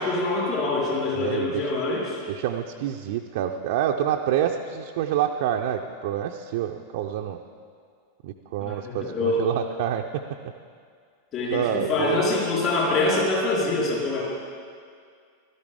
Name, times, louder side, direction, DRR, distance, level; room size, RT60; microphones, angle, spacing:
voice 1, 0.0-2.2 8.6-9.5 11.3-14.2, left 2 dB, 35° left, -5 dB, 4.1 m, -25 dB
voice 2, 1.2-1.7 2.3-7.4 8.2-10.2 11.5-12.2, right 10 dB, 50° right, 2 dB, 0.5 m, -27 dB
17.0 x 13.0 x 3.5 m, 2.1 s
figure-of-eight pair, 90°, 0 cm